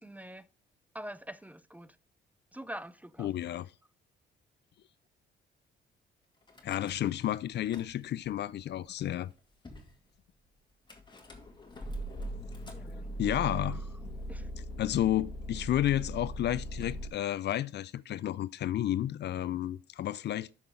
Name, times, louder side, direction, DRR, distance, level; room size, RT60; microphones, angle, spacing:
voice 1, 0.0-0.5 0.9-2.0 2.5-3.3 12.6-13.0 13.6-13.8 14.3-14.5, right 1 dB, 5° right, 0.5 m, -45 dB
voice 2, 3.2-3.7 6.6-9.3 13.2-13.8 14.8-20.5, left 12 dB, 60° left, 0.4 m, -31 dB
Car / Engine starting / Idling, 6.5-7.3 7.5-8.3 9.0-9.1 9.2-9.3 9.6-9.9 10.9-17.1, right 1 dB, 25° left, 2.1 m, -40 dB
9.4 x 6.0 x 3.8 m
cardioid pair, 90°, 20 cm